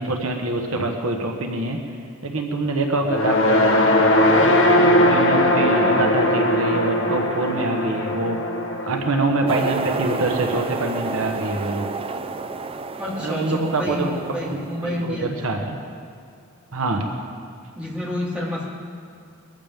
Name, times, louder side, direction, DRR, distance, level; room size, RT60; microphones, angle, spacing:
voice 1, 0.0-1.8 2.2-8.4 8.9-11.9 13.2-14.1 14.4-15.8 16.7-17.1, right 2 dB, 70° right, 2 dB, 1.3 m, -25 dB
sound 1, 3.0-11.4, left 1 dB, 60° left, 1.2 m, -20 dB
sound 2, 9.5-15.0, right 3 dB, 25° right, 0.4 m, -30 dB
voice 2, 13.0-14.1 14.3-15.3 17.8-18.6, left 1 dB, 5° right, -8 dB, 3.5 m, -28 dB
22.0 x 14.5 x 3.7 m, 2.3 s
head